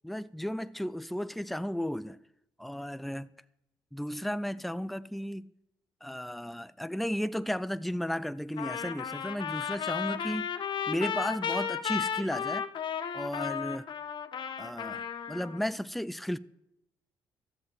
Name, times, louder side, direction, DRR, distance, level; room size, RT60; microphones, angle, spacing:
voice 1, 0.0-2.2 2.6-3.3 3.9-5.5 6.0-10.5 10.9-12.7 13.1-13.9 14.6-16.4, equal, ahead, 0.5 m, -34 dB
Trumpet, 8.6-15.6, left 7 dB, 60° left, 1.2 m, -34 dB
13.0 x 7.4 x 7.8 m
cardioid pair, 75°, 9 cm